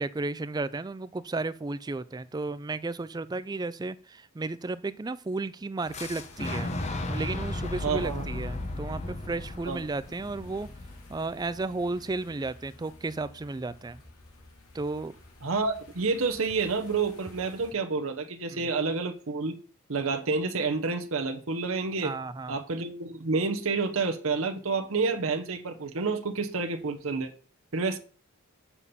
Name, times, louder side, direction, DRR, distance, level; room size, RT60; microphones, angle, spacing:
voice 1, 0.0-6.7 7.1-10.7 11.1-14.0 14.7-15.2 18.5-18.6 22.0-22.6, right 3 dB, 20° right, 0.3 m, -33 dB
sound 1, 5.8-17.7, left 2 dB, 85° left, 2.6 m, -53 dB
Boom, 5.9-11.8, left 2 dB, 30° left, 0.9 m, -35 dB
voice 2, 7.8-8.3 9.7-9.8 15.4-19.6 19.9-22.1 22.5-27.3 27.7-28.0, right 4 dB, 70° right, 0.9 m, -29 dB
7.1 x 4.3 x 6.8 m
head